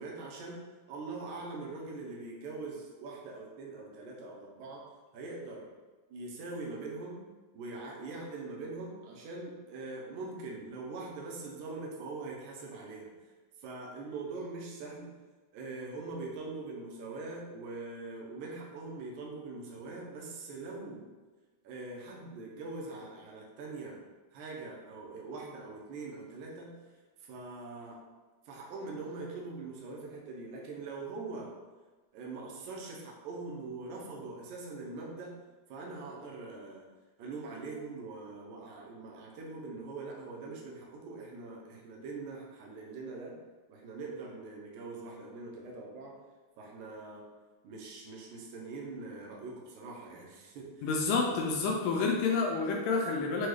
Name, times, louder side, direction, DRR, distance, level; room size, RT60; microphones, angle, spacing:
voice 1, 0.0-4.8 5.1-5.7 6.1-7.2 7.5-13.1 13.6-15.1 15.5-21.1 21.6-24.0 24.3-26.7 27.2-28.0 28.5-31.5 32.1-35.3 35.7-36.9 37.2-43.4 43.7-46.1 46.6-47.3 47.6-50.9, right 3 dB, 80° right, -2 dB, 1.8 m, -42 dB
voice 2, 50.8-53.5, left 4 dB, 80° left, 0 dB, 2.1 m, -29 dB
6.1 x 2.3 x 3.2 m, 1.3 s
omnidirectional pair, 4.1 m